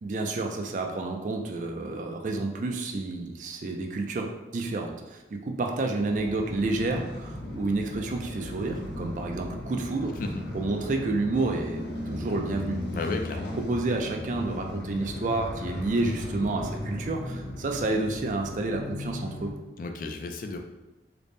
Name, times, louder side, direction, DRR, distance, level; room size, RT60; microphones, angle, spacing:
voice 1, 0.0-10.1 10.5-12.8 13.5-19.5, right 2 dB, 45° right, 3 dB, 0.3 m, -30 dB
sound 1, 6.0-19.5, left 1 dB, 75° left, 0.7 m, -36 dB
voice 2, 12.9-13.5 19.8-20.6, left 3 dB, 50° left, 5 dB, 0.3 m, -33 dB
3.9 x 2.0 x 3.4 m, 1.1 s
head